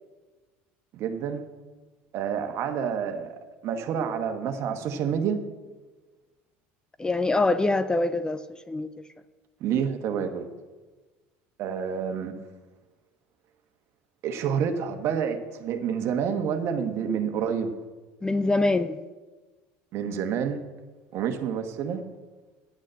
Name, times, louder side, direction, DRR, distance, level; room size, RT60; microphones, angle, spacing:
voice 1, 0.9-1.4 2.1-5.4 9.6-10.5 11.6-12.3 14.2-17.7 19.9-20.6 21.1-22.0, right 7 dB, 60° right, 7 dB, 1.3 m, -28 dB
voice 2, 7.0-8.9 18.2-19.0, left 2 dB, 15° left, 13 dB, 0.5 m, -24 dB
10.5 x 6.4 x 7.7 m, 1.2 s
supercardioid pair, 100°, 5 cm